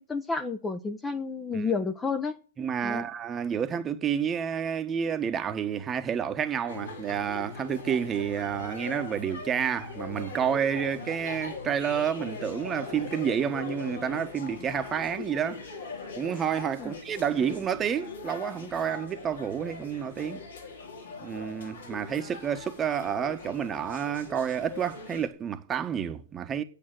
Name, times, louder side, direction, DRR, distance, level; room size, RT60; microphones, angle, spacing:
voice 1, 0.1-2.4 2.8-3.0 16.8-16.9, left 4 dB, 10° left, 0.9 m, -30 dB
voice 2, 2.6-15.6 16.2-20.4 21.2-26.6, right 8 dB, 20° right, 1.2 m, -29 dB
sound 1, 6.7-25.3, left 4 dB, 75° left, 4.2 m, -41 dB
8.9 x 8.5 x 9.3 m
hypercardioid pair, 130°, 0 cm